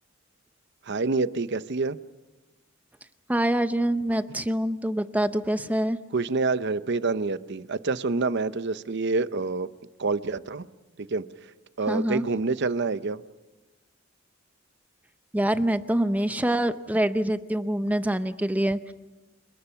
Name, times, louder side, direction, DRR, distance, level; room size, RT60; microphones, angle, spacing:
voice 1, 0.9-2.0 6.1-9.7 10.0-10.7 11.0-11.2 11.8-13.2, right 3 dB, 60° right, 14 dB, 0.7 m, -27 dB
voice 2, 3.3-6.0 11.9-12.2 15.3-18.9, right 1 dB, 10° right, 11 dB, 0.7 m, -25 dB
29.5 x 20.5 x 5.8 m, 1.1 s
head